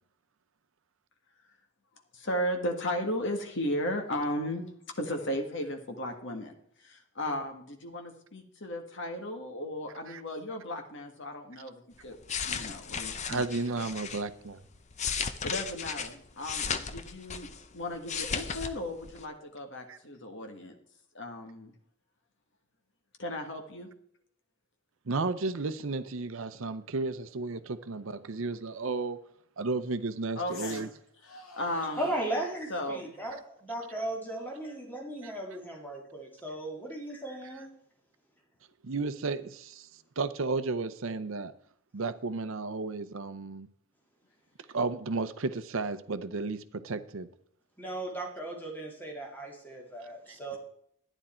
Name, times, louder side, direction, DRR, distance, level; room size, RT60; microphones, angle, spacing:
voice 1, 2.1-4.6 5.0-6.5 6.8-13.4 15.4-20.7 21.1-21.7 23.2-23.9 30.3-30.9 31.6-32.1 32.7-33.1, left 1 dB, 55° left, 1.7 m, -35 dB
sound 1, 12.0-14.2 14.7-17.7 17.9-18.7 19.0-19.2, left 6 dB, 30° left, 0.6 m, -35 dB
voice 2, 13.3-14.6 19.9-20.0 25.1-29.2 29.6-30.9 35.2-35.3 38.8-39.9 40.2-41.5 41.9-43.7 44.7-47.3, right 3 dB, 65° right, 0.7 m, -33 dB
sound 2, 28.7-28.8 30.4-31.0 31.2-32.6 34.3-35.8, left 3 dB, 70° left, 2.0 m, -49 dB
voice 3, 32.0-37.7 47.8-50.6, right 1 dB, 10° left, 2.0 m, -36 dB
12.0 x 9.9 x 4.4 m
head